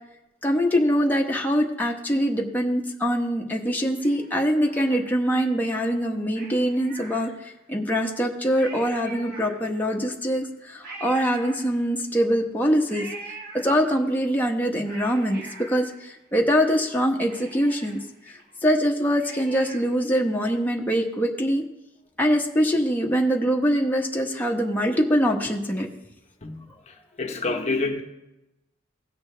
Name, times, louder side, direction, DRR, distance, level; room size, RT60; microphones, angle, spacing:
voice 1, 0.4-13.1 13.6-15.4 15.7-18.0 18.3-21.6 22.2-25.9, equal, 10° left, -1 dB, 1.1 m, -23 dB
Cat, 4.0-5.5 6.3-7.7 8.2-8.3 8.5-10.0 10.8-12.2 12.9-14.1 14.6-16.6 16.9-17.0 17.3-20.1 20.4-20.5, right 3 dB, 55° right, 2.4 m, -43 dB
voice 2, 26.9-28.0, left 3 dB, 40° left, 3 dB, 1.0 m, -28 dB
17.5 x 6.8 x 3.4 m, 0.93 s
head